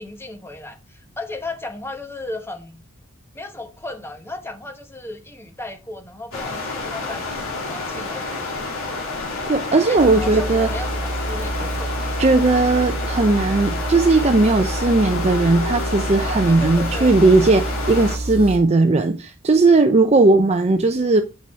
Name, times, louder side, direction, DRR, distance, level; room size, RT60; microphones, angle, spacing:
voice 1, 0.0-2.8 3.3-8.7 9.9-12.3 16.5-17.1, left 2 dB, 10° left, 1.0 m, -35 dB
sound 1, 6.3-18.2, left 3 dB, 75° left, 2.7 m, -29 dB
voice 2, 9.5-10.7 12.2-21.2, right 3 dB, 30° right, 0.5 m, -17 dB
sound 2, 10.0-18.6, right 1 dB, 45° left, 3.4 m, -28 dB
7.6 x 5.9 x 4.4 m
head